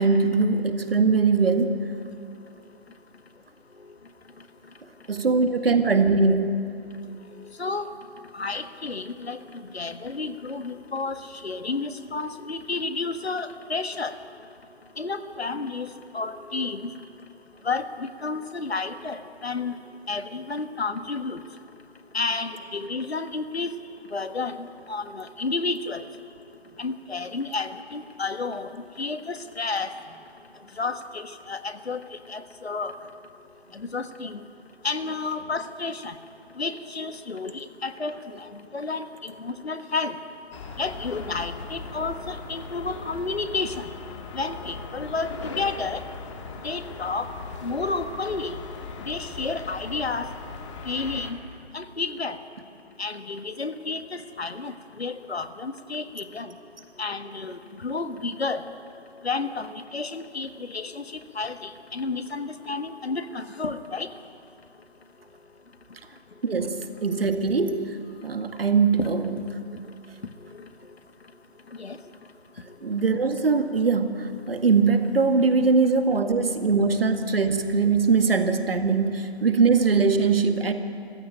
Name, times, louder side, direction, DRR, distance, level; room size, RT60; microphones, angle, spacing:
voice 1, 0.0-1.8 5.1-6.7 66.4-67.9 68.2-69.4 72.8-80.7, right 4 dB, 60° right, 8 dB, 2.0 m, -21 dB
voice 2, 8.3-14.1 15.0-15.9 16.1-16.9 17.6-19.7 20.1-21.4 22.1-23.7 24.1-26.0 26.8-28.7 29.0-29.9 30.8-32.0 32.3-32.9 33.7-34.4 34.8-36.2 36.6-40.1 40.8-43.9 44.3-46.0 46.6-47.3 47.6-48.5 49.0-50.3 50.8-51.4 51.7-52.4 53.0-56.5 57.0-58.6 59.2-61.0 61.3-64.1 69.0-69.1 71.8-72.0, left 3 dB, 75° left, 10 dB, 1.6 m, -31 dB
sound 1, 40.5-51.3, left 4 dB, 30° left, 2.1 m, -39 dB
26.0 x 15.0 x 9.0 m, 2.5 s
figure-of-eight pair, 150°, 32 cm